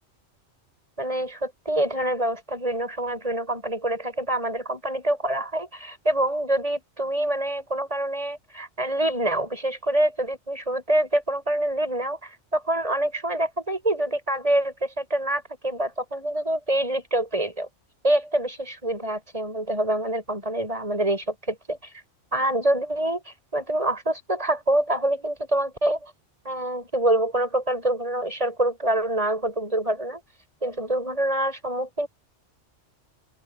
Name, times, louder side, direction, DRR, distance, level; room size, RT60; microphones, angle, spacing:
voice 1, 1.0-17.7 18.0-21.8 22.3-26.1 26.4-30.2 30.6-32.1, right 1 dB, 30° right, 7.7 m, -26 dB
open air
omnidirectional pair, 1.3 m